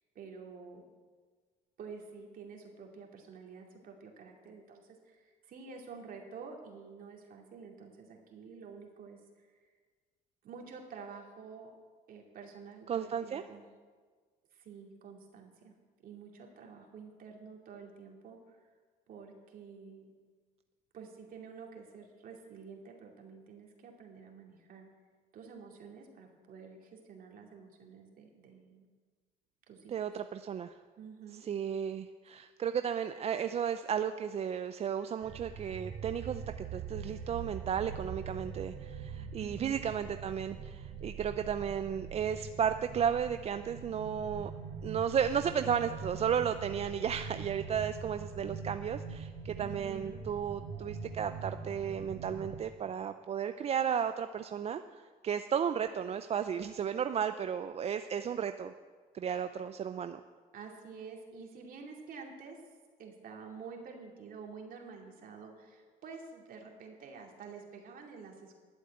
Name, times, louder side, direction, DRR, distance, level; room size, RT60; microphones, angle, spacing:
voice 1, 0.1-0.8 1.8-9.7 10.4-11.7 12.1-13.6 14.5-15.7 16.0-18.6 19.1-20.1 20.9-24.9 25.3-28.9 29.7-30.0 31.0-31.5 39.4-39.8 49.6-50.2 59.3-59.4 60.5-62.6 63.0-68.5, right 5 dB, 55° right, 1 dB, 2.6 m, -49 dB
voice 2, 12.9-13.4 29.9-30.7 31.5-36.4 36.7-44.5 44.8-58.7 59.1-60.2, right 8 dB, 40° right, 9 dB, 0.4 m, -34 dB
sound 1, 35.2-52.6, right 6 dB, 90° right, 2.6 m, -43 dB
11.5 x 8.0 x 8.4 m, 1.5 s
cardioid pair, 110°, 17 cm